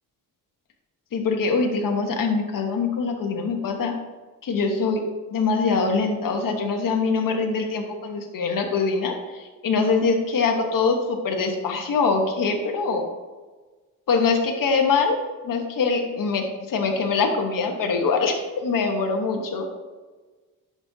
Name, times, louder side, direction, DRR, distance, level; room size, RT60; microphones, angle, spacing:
voice 1, 1.1-3.9 4.4-5.0 5.3-13.1 14.1-15.2 15.4-19.7, left 4 dB, 60° left, 2 dB, 1.2 m, -23 dB
10.5 x 6.2 x 2.8 m, 1.3 s
cardioid pair, 80°, 37 cm